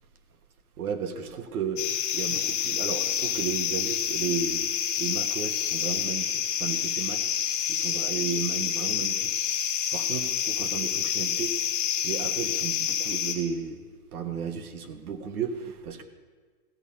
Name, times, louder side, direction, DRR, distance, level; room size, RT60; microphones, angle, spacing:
voice 1, 0.8-1.8 2.1-7.3 7.7-9.4 9.9-11.5 12.0-13.8 14.1-16.0, right 6 dB, 85° right, 8 dB, 1.4 m, -34 dB
sound 1, 1.8-13.3, left 9 dB, 35° left, 1.6 m, -28 dB
15.0 x 5.6 x 8.8 m, 1.5 s
supercardioid pair, 180°, 43 cm